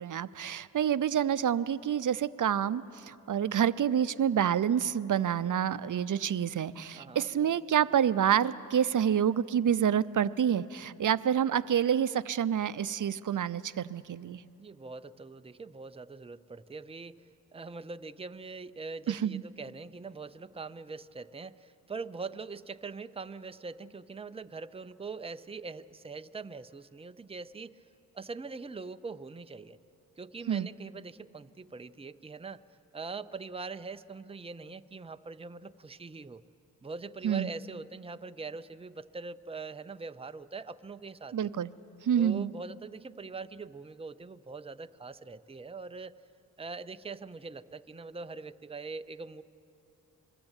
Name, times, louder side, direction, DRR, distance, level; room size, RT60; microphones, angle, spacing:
voice 1, 0.0-14.4 19.1-19.4 30.5-30.7 37.2-37.5 41.3-41.7 42.0-42.5, right 9 dB, 55° right, 15 dB, 0.7 m, -28 dB
voice 2, 7.0-7.3 14.6-17.2 17.5-27.8 28.1-29.8 30.2-32.6 32.9-36.4 36.8-41.3 42.2-46.2 46.6-49.4, right 4 dB, 15° right, 10 dB, 0.6 m, -42 dB
27.5 x 21.0 x 9.0 m, 2.9 s
cardioid pair, 75°, 37 cm